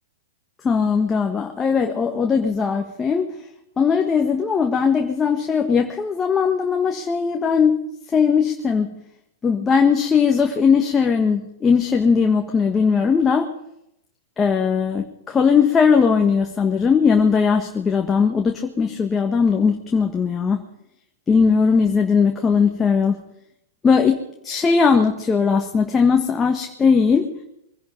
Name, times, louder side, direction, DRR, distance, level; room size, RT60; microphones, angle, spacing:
voice 1, 0.6-3.3 3.8-7.8 8.1-8.9 9.4-13.5 14.4-20.7 21.3-23.2 23.8-27.3, left 5 dB, 20° left, 3 dB, 1.4 m, -19 dB
23.5 x 11.0 x 5.3 m, 0.80 s
hypercardioid pair, 110°, 0 cm